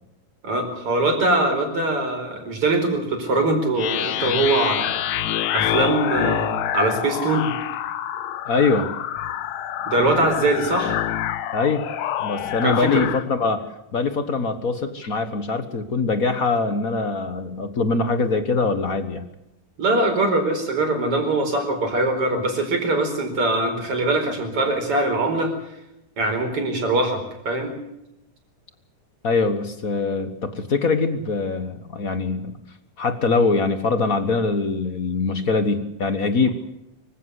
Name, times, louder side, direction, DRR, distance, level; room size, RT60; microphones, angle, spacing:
voice 1, 0.4-5.0 5.5-7.5 9.9-11.0 12.6-13.0 19.8-25.5 26.2-27.7, right 2 dB, 45° right, 5 dB, 5.4 m, -22 dB
sound 1, 3.8-13.2, left 11 dB, 70° left, 2.1 m, -26 dB
voice 2, 8.5-8.9 11.5-11.8 12.2-13.6 13.9-19.2 29.2-32.6 33.0-36.5, left 4 dB, 55° left, 10 dB, 0.9 m, -23 dB
25.0 x 16.0 x 8.2 m, 0.86 s
omnidirectional pair, 3.6 m